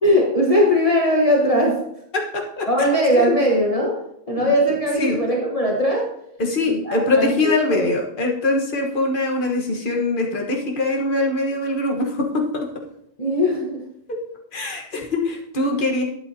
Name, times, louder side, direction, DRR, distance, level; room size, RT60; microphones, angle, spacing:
voice 1, 0.0-1.8 2.7-4.0 4.3-6.1 6.7-7.9 13.2-13.8, equal, 30° left, -2 dB, 1.4 m, -19 dB
voice 2, 2.1-2.7 3.2-3.3 4.3-4.5 5.0-5.2 6.4-12.7 14.1-14.2 14.5-16.0, left 2 dB, 45° left, 0 dB, 1.6 m, -23 dB
12.0 x 8.7 x 2.8 m, 0.75 s
omnidirectional pair, 1.2 m